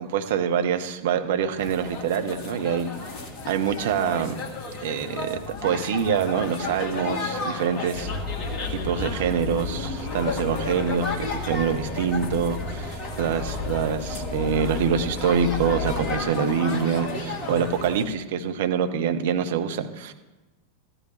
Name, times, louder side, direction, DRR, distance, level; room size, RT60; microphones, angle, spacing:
voice 1, 0.0-2.9 3.5-4.4 4.8-8.1 8.8-20.1, right 7 dB, 55° right, 7 dB, 0.8 m, -25 dB
sound 1, 1.6-18.0, left 3 dB, 35° left, 1.4 m, -33 dB
sound 2, 7.9-16.3, left 4 dB, 20° left, 1.8 m, -34 dB
14.0 x 10.0 x 3.2 m, 1.1 s
figure-of-eight pair, 90°, 0 cm